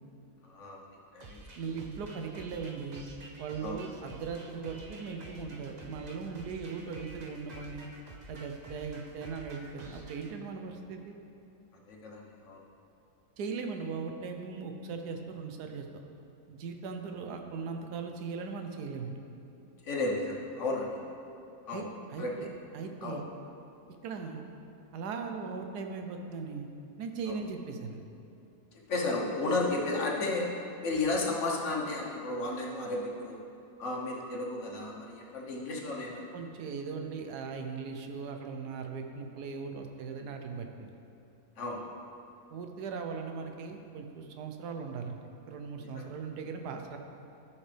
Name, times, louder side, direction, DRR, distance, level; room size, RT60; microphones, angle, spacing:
voice 1, 0.4-0.8 1.1-1.4 3.6-3.8 11.9-12.6 19.8-21.0 21.6-21.8 22.2-22.3 23.0-23.2 27.3-27.4 28.7-30.5 30.8-33.4 33.8-36.2 41.6-41.8 45.8-46.1, left 2 dB, 50° left, -1 dB, 1.3 m, -33 dB
sound 1, 1.2-10.3, right 2 dB, 60° right, 0.4 m, -50 dB
voice 2, 1.6-3.0 3.4-7.9 8.3-11.2 13.4-15.9 16.5-19.2 21.7-22.5 22.7-23.3 24.0-24.4 24.9-26.7 27.0-28.0 36.3-40.9 42.5-47.0, right 5 dB, 85° right, 4 dB, 1.3 m, -39 dB
13.0 x 5.8 x 3.3 m, 2.7 s
omnidirectional pair, 1.7 m